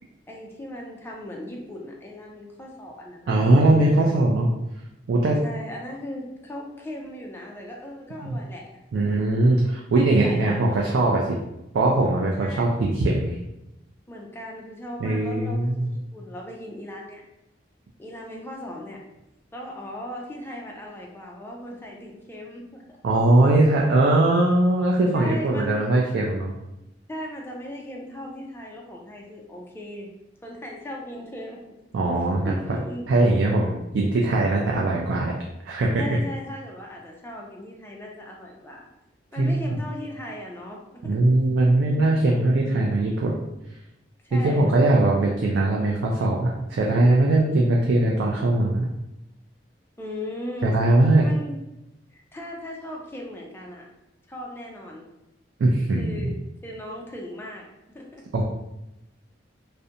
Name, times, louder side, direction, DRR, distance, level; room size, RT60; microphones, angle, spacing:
voice 1, 0.3-3.4 5.4-8.7 8.9-9.2 9.9-10.9 12.4-12.7 14.1-17.2 18.0-19.0 19.5-23.0 25.1-25.8 27.1-30.1 30.4-31.6 32.5-33.1 36.0-38.9 39.3-41.2 41.8-42.6 44.2-45.0 50.0-50.8 51.2-51.6 52.1-53.9 54.3-55.1 56.0-56.3 56.6-57.7 57.9-58.2, left 1 dB, 10° left, -1 dB, 0.3 m, -37 dB
voice 2, 3.3-4.5 5.1-5.4 8.2-8.4 8.9-11.4 11.7-13.4 15.0-15.9 23.0-26.5 31.9-32.6 33.1-35.3 35.6-36.0 39.4-39.8 41.0-43.4 44.3-48.9 50.6-51.2 55.6-56.3 58.3-58.4, right 2 dB, 70° right, -2 dB, 0.3 m, -20 dB
2.5 x 2.1 x 2.7 m, 0.90 s
head